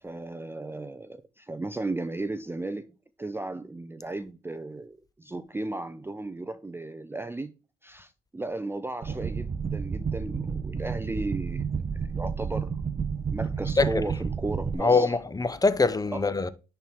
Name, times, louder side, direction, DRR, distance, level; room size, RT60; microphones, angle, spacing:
voice 1, 0.0-2.9 3.2-7.5 7.8-11.7 11.9-12.7 13.3-15.2 16.1-16.2, right 2 dB, 10° right, 0.5 m, -35 dB
sound 1, 9.0-14.7, right 6 dB, 30° right, 0.9 m, -31 dB
voice 2, 14.8-16.5, left 3 dB, 20° left, 0.8 m, -23 dB
10.0 x 4.5 x 3.7 m
cardioid pair, 90°, 20 cm